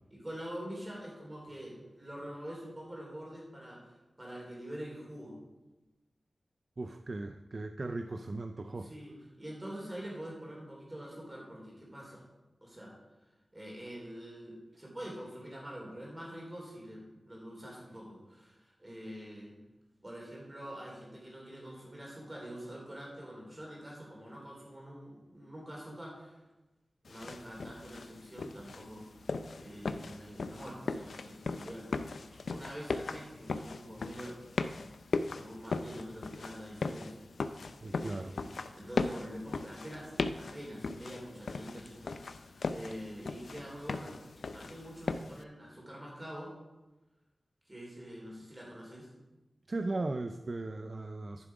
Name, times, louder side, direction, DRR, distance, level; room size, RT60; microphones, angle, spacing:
voice 1, 0.1-5.4 8.8-12.2 12.6-13.0 13.5-19.6 20.0-26.4 27.1-29.3 29.6-32.2 32.5-34.4 35.3-37.2 37.8-44.2 44.5-46.5 47.7-49.1, equal, 20° right, -3 dB, 3.8 m, -45 dB
voice 2, 6.8-8.9 37.8-38.4 49.7-51.5, right 2 dB, 45° right, 8 dB, 0.4 m, -37 dB
sound 1, 27.1-45.4, left 4 dB, 85° left, 0.4 m, -38 dB
10.5 x 7.4 x 4.9 m, 1.1 s
wide cardioid pair, 100°, 0 cm